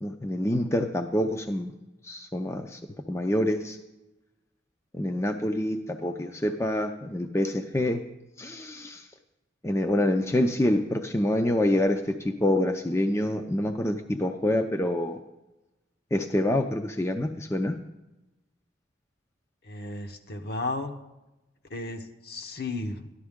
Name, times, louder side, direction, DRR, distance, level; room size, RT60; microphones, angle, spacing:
voice 1, 0.0-1.7 2.0-2.8 3.1-3.8 4.9-8.0 8.4-9.1 9.6-15.2 16.1-17.8, left 1 dB, 15° left, 5 dB, 0.5 m, -26 dB
voice 2, 19.7-20.9 21.7-23.1, left 2 dB, 60° left, 6 dB, 1.0 m, -34 dB
14.0 x 11.5 x 3.6 m, 1.0 s
head